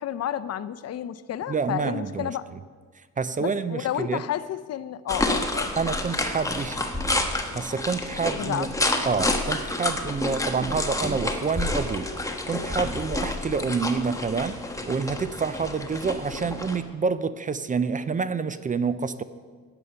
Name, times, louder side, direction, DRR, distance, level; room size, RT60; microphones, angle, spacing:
voice 1, 0.0-2.4 3.4-5.7 8.3-8.7, left 11 dB, 55° left, 14 dB, 0.6 m, -31 dB
voice 2, 1.5-2.3 3.2-4.2 5.8-6.9 7.5-8.7 9.1-14.6 14.9-19.2, right 5 dB, 25° right, 14 dB, 0.5 m, -28 dB
sound 1, 5.1-16.8, left 2 dB, 10° left, 1.2 m, -29 dB
12.5 x 9.0 x 5.6 m, 1.5 s
cardioid pair, 90°, 30 cm